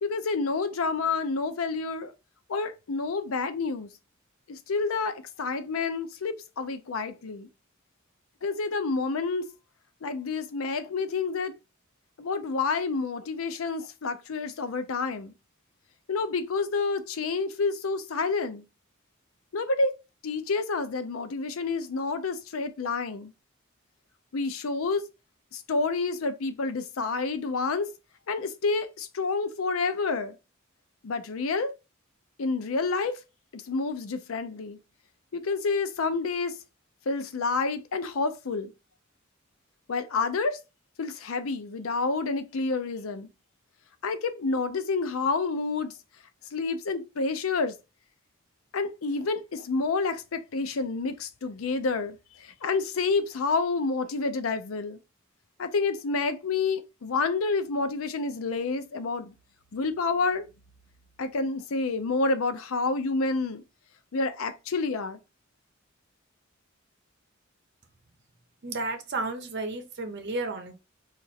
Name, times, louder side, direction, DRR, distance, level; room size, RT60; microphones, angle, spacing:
voice 1, 0.0-2.1 2.5-3.9 4.5-7.5 8.4-9.5 10.0-11.5 12.2-15.3 16.1-18.6 19.5-19.9 20.2-23.3 24.3-25.0 25.5-27.9 28.3-30.3 31.0-31.7 32.4-33.2 33.5-34.8 35.3-36.6 37.1-38.7 39.9-40.6 41.0-43.3 44.0-45.9 46.5-47.7 48.7-55.0 55.6-59.3 59.7-60.5 61.2-63.6 64.1-65.2, left 4 dB, 90° left, 0.5 m, -29 dB
voice 2, 68.6-70.7, right 2 dB, 55° right, 0.7 m, -32 dB
3.0 x 2.5 x 4.1 m
head